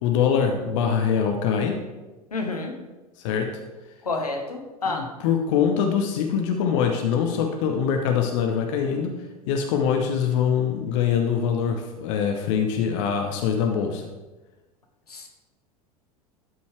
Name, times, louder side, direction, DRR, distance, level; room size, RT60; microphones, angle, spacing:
voice 1, 0.0-1.8 3.2-3.5 4.9-9.1 9.5-14.1, left 7 dB, 55° left, 4 dB, 0.9 m, -23 dB
voice 2, 2.3-2.8 4.0-5.1 15.1-15.3, left 3 dB, 80° left, 3 dB, 1.2 m, -29 dB
12.5 x 5.4 x 3.3 m, 1.1 s
figure-of-eight pair, 80°, 19 cm